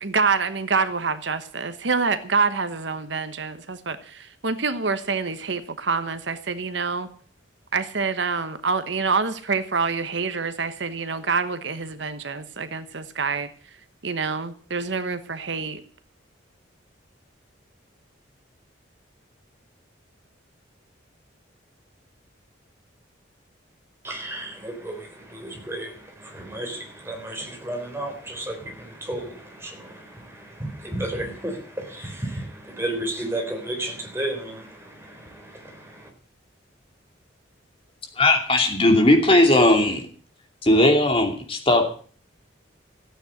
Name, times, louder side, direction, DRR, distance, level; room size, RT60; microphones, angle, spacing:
voice 1, 0.0-7.1 7.7-13.5 14.0-15.8, right 4 dB, 70° right, 11 dB, 1.1 m, -26 dB
voice 2, 24.0-36.1, right 1 dB, 15° right, 2 dB, 3.7 m, -33 dB
voice 3, 38.2-40.0 40.6-41.9, left 1 dB, 30° left, 4 dB, 2.6 m, -17 dB
14.5 x 9.1 x 7.7 m, 0.44 s
head